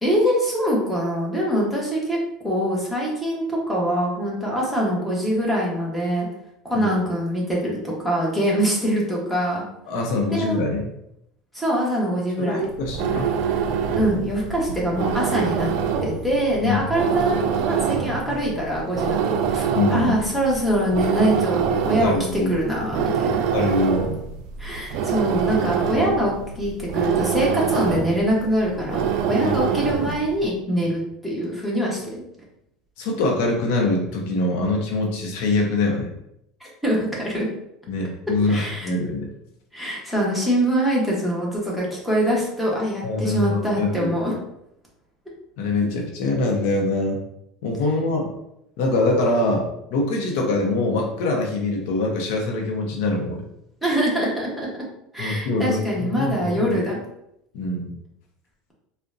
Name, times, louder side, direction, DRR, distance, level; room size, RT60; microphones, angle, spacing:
voice 1, 0.0-2.2 2.4-6.3 6.6-9.6 10.3-10.6 11.5-12.6 14.0-15.7 16.0-23.4 24.6-32.2 36.6-37.5 38.5-38.9 39.7-44.3 53.8-54.8 55.1-57.0, equal, ahead, -5 dB, 1.0 m, -24 dB
voice 2, 9.9-10.9 12.4-13.3 16.6-16.8 19.7-20.1 22.0-22.5 23.5-24.1 29.4-29.5 33.0-36.1 37.9-39.3 43.0-44.2 45.6-47.2 47.6-48.3 48.8-49.7 49.9-53.4 55.2-55.8 56.1-56.8 57.5-57.9, left 2 dB, 75° left, 0 dB, 0.6 m, -23 dB
sound 1, 12.7-30.3, right 7 dB, 70° right, 0.3 m, -25 dB
3.6 x 2.1 x 2.5 m, 0.80 s
supercardioid pair, 125°, 0 cm